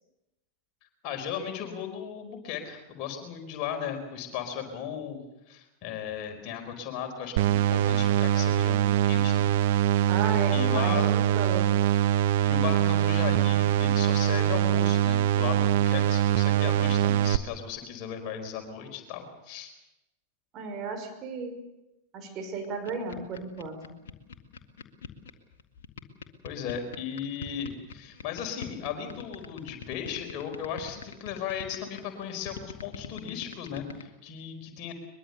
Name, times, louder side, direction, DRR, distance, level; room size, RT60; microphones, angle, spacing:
voice 1, 0.8-9.5 10.5-11.2 12.4-19.7 26.4-34.9, left 8 dB, 40° left, 5 dB, 4.7 m, -36 dB
sound 1, 7.4-17.4, right 11 dB, 55° right, 0.7 m, -23 dB
voice 2, 10.1-11.7 20.5-21.6 22.1-24.0, right 4 dB, 35° right, 4 dB, 5.9 m, -34 dB
sound 2, 22.6-34.0, left 7 dB, 60° left, 2.1 m, -40 dB
23.0 x 23.0 x 6.9 m, 0.95 s
figure-of-eight pair, 90°, 0 cm